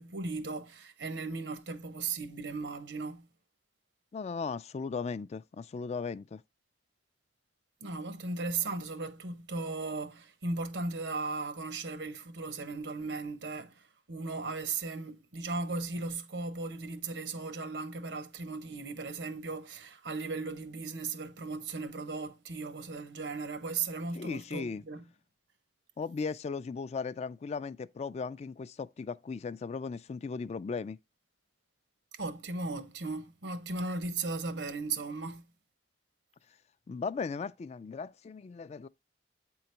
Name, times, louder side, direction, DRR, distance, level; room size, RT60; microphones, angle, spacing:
voice 1, 0.0-3.3 7.8-25.0 32.1-35.4, right 3 dB, 85° right, 1.1 m, -37 dB
voice 2, 4.1-6.4 24.1-24.8 26.0-31.0 36.9-38.9, left 5 dB, 40° left, 0.3 m, -37 dB
8.7 x 3.9 x 4.5 m
head